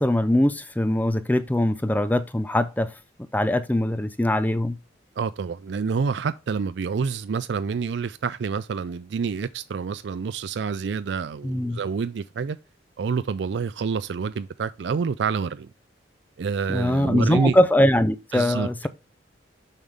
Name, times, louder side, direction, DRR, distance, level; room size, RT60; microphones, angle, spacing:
voice 1, 0.0-2.9 3.3-4.8 11.4-11.8 16.7-18.9, left 1 dB, 10° left, 0.5 m, -22 dB
voice 2, 5.2-12.6 13.0-15.7 16.4-17.6 18.3-18.7, right 5 dB, 70° right, 0.4 m, -27 dB
7.2 x 5.6 x 3.3 m
head